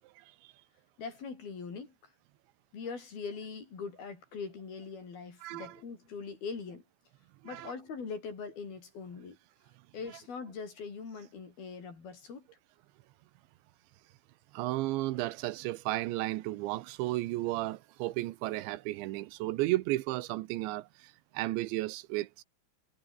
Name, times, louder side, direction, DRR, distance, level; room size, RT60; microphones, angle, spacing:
voice 1, 1.0-1.9 2.7-6.8 7.4-9.4 9.9-12.5, left 5 dB, 55° left, 6.9 m, -42 dB
voice 2, 5.4-5.8 7.4-7.7 14.5-20.9 21.3-22.4, right 18 dB, 80° right, 3.2 m, -33 dB
omnidirectional pair, 5.3 m